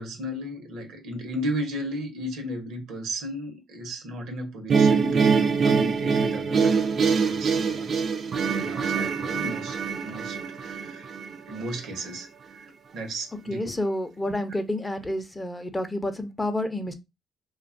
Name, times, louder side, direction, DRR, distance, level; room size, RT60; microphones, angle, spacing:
voice 1, 0.0-7.9 8.5-11.1 11.5-13.6 14.2-14.3, equal, 85° right, 0.8 m, -35 dB
sound 1, 4.7-11.8, right 5 dB, 55° right, 0.4 m, -24 dB
voice 2, 13.5-16.9, left 1 dB, 15° left, 0.4 m, -29 dB
2.7 x 2.2 x 2.5 m
cardioid pair, 90°, 0 cm